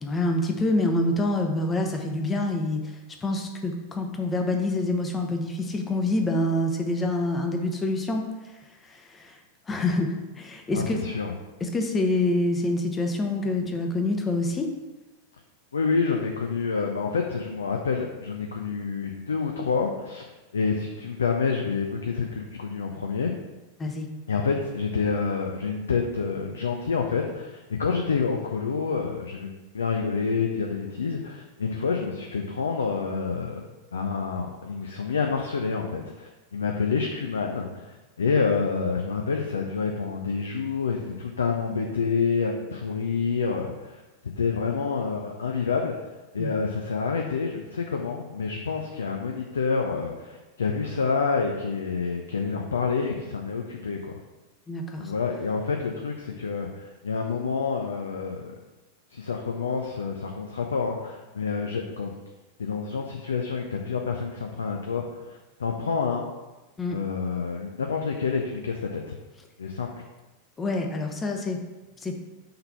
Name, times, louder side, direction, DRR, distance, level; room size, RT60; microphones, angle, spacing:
voice 1, 0.0-9.4 9.7-11.0 11.6-14.7 23.8-24.1 46.4-46.5 54.7-55.1 66.8-67.0 70.6-71.6 72.0-72.2, left 2 dB, 20° left, 3 dB, 0.9 m, -27 dB
voice 2, 10.7-11.3 15.7-23.3 24.3-33.6 33.9-44.0 44.4-45.9 46.3-54.1 55.0-58.5 59.1-62.2 62.6-66.3 66.9-69.2 69.6-70.0, left 5 dB, 70° left, 2 dB, 0.6 m, -28 dB
5.7 x 3.5 x 5.8 m, 1.1 s
figure-of-eight pair, 90°, 0 cm